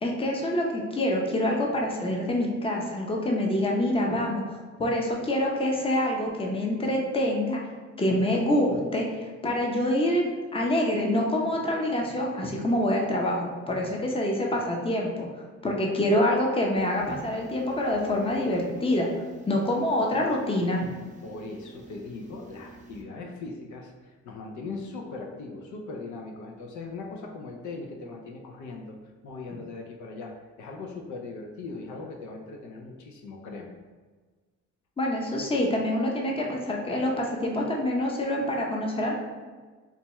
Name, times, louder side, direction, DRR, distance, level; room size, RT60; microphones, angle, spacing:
voice 1, 0.0-4.4 4.8-7.6 8.0-10.2 10.5-15.3 15.6-19.1 19.5-20.8 35.0-39.1, left 1 dB, 20° left, -1 dB, 0.7 m, -26 dB
sound 1, 16.8-23.0, right 2 dB, 25° right, 0.6 m, -49 dB
voice 2, 21.2-28.9 29.2-30.3 30.6-33.8, left 3 dB, 75° left, 1 dB, 0.6 m, -39 dB
4.0 x 2.3 x 3.0 m, 1.4 s
cardioid pair, 90°, 30 cm